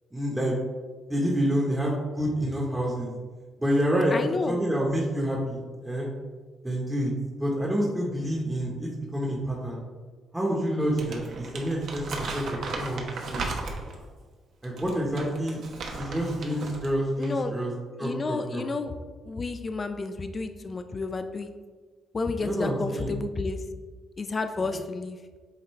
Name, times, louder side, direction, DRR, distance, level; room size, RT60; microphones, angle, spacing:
voice 1, 0.1-0.6 1.1-3.1 3.6-4.1 4.5-6.1 6.6-7.1 7.4-9.8 10.3-13.0 13.3-13.4 14.6-15.6 16.0-17.7 18.0-18.6 22.4-23.1 24.7-24.8, equal, 10° right, -3 dB, 1.2 m, -28 dB
voice 2, 4.1-4.6 17.2-17.5 18.0-18.9 19.3-21.5 22.1-23.6 24.2-25.2, left 3 dB, 35° left, 8 dB, 0.4 m, -31 dB
Crumpling crinkling, 10.8-14.0 14.6-16.9 17.2-17.4, right 3 dB, 65° right, 0.9 m, -36 dB
8.1 x 3.8 x 3.2 m, 1.4 s
cardioid pair, 90°, 0 cm